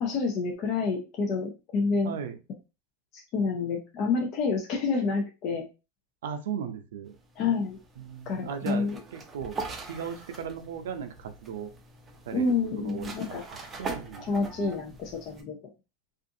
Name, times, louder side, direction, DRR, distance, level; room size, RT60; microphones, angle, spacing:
voice 1, 0.0-2.1 3.3-5.7 7.4-7.8 8.3-9.0 12.3-13.4 14.3-15.6, left 4 dB, 40° left, 1 dB, 0.5 m, -28 dB
voice 2, 2.0-2.3 6.2-7.2 8.0-9.6 9.9-11.7 12.3-12.5 12.8-14.2, right 7 dB, 85° right, 7 dB, 0.5 m, -37 dB
sound 1, 7.1-15.4, right 4 dB, 20° right, 0.5 m, -42 dB
2.4 x 2.4 x 2.6 m, 0.30 s
supercardioid pair, 135°, 0 cm